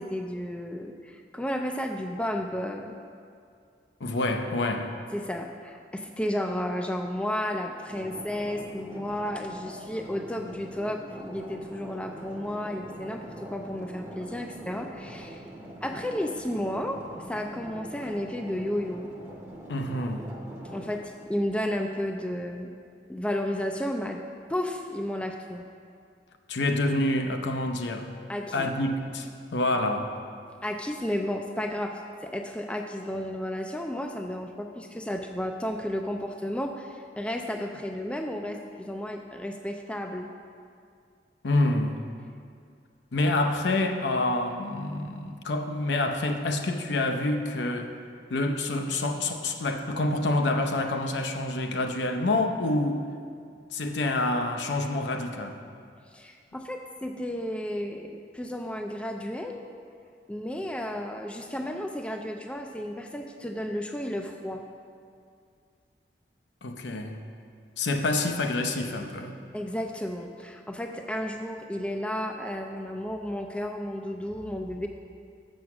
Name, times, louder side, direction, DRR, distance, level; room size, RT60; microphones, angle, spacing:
voice 1, 0.0-3.0 5.1-15.4 15.8-17.0 17.3-19.1 20.7-22.7 23.1-24.2 24.5-25.6 28.3-28.7 30.6-40.3 56.1-59.6 60.3-64.6 69.5-74.9, left 1 dB, 5° left, 3 dB, 0.3 m, -32 dB
voice 2, 4.0-4.9 19.7-20.3 26.5-28.1 28.5-30.2 41.4-42.0 43.1-47.9 48.3-53.1 53.7-55.6 66.6-67.2 67.8-69.4, left 2 dB, 75° left, 5 dB, 0.7 m, -27 dB
sound 1, 7.9-21.0, right 1 dB, 10° right, 0.8 m, -43 dB
7.2 x 6.3 x 5.9 m, 2.3 s
head